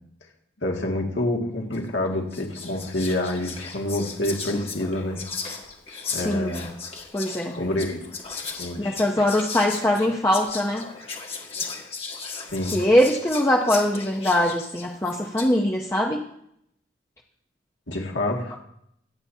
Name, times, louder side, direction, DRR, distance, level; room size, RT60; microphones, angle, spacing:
voice 1, 0.6-5.2 6.1-6.7 7.6-8.0 8.6-9.0 12.5-12.7 17.9-18.5, left 1 dB, 65° left, 0 dB, 2.1 m, -27 dB
Whispering, 1.7-1.9 2.3-15.6, left 5 dB, 30° left, 1.6 m, -36 dB
voice 2, 6.1-6.5 7.1-7.5 8.8-10.9 12.7-16.2, left 1 dB, 15° left, -1 dB, 0.8 m, -22 dB
24.5 x 8.7 x 2.8 m, 0.75 s
head